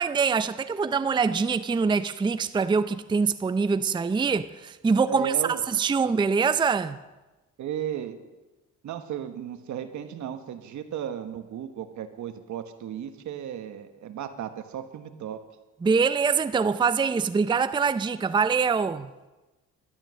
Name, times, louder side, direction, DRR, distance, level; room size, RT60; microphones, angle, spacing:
voice 1, 0.0-7.0 15.8-19.1, right 5 dB, 15° right, 0.5 m, -24 dB
voice 2, 5.1-5.6 7.6-8.2 8.8-15.4, right 9 dB, 70° right, 1.3 m, -34 dB
12.0 x 12.0 x 6.4 m
cardioid pair, 90°, 30 cm